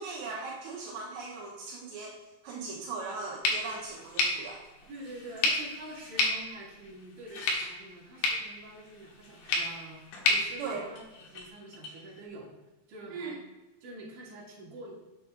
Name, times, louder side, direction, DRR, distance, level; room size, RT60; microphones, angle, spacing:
voice 1, 0.0-2.2 2.4-4.6 10.6-10.9 13.1-13.3, right 4 dB, 80° right, -3 dB, 3.3 m, -38 dB
sound 1, 3.4-11.5, left 3 dB, 70° left, 3.1 m, -32 dB
sound 2, 3.6-10.4 11.0-12.2, left 3 dB, 85° left, 3.8 m, -51 dB
voice 2, 4.9-12.5 12.9-13.4 13.8-14.9, right 1 dB, 50° right, -6 dB, 3.5 m, -46 dB
8.0 x 6.6 x 3.8 m, 1.1 s
omnidirectional pair, 5.0 m